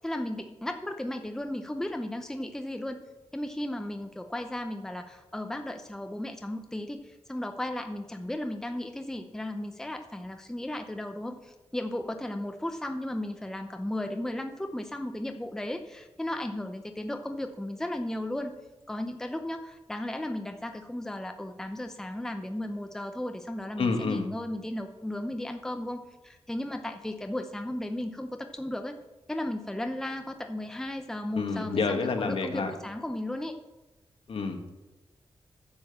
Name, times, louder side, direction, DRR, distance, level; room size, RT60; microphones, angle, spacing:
voice 1, 0.0-3.0 3.3-18.5 18.9-29.0 29.3-33.5, left 1 dB, 5° left, 6 dB, 0.6 m, -35 dB
voice 2, 23.8-24.3 31.3-32.7 34.3-34.6, left 4 dB, 65° left, 5 dB, 1.5 m, -28 dB
10.5 x 6.9 x 7.3 m, 1.1 s
wide cardioid pair, 150°, 10 cm